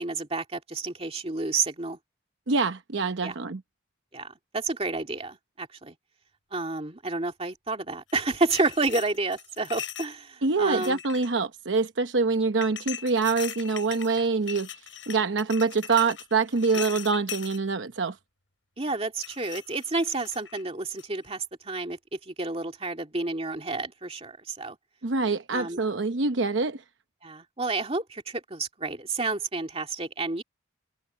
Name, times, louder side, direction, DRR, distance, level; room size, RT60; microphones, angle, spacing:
voice 1, 0.0-2.0 3.2-3.3 4.1-5.9 6.5-11.0 18.8-24.8 25.5-25.8 27.2-30.4, right 3 dB, 30° right, 2.3 m, -30 dB
voice 2, 2.5-3.6 10.4-14.7 15.1-18.2 25.0-26.8, right 4 dB, 70° right, 0.9 m, -25 dB
sound 1, 8.1-10.1 10.6-11.4 12.6-17.6 19.2-20.6 21.0-21.2, left 10 dB, 80° left, 5.6 m, -40 dB
head